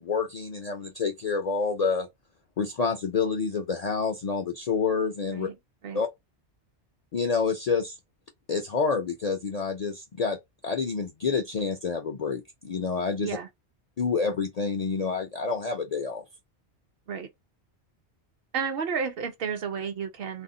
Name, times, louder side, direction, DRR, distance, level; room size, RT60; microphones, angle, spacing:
voice 1, 0.0-2.1 2.6-5.5 5.9-6.1 7.1-8.0 8.5-10.4 10.6-13.4 14.0-16.2, left 5 dB, 60° left, 0.4 m, -28 dB
voice 2, 18.5-20.4, right 6 dB, 60° right, 0.7 m, -32 dB
2.4 x 2.0 x 3.7 m
omnidirectional pair, 1.2 m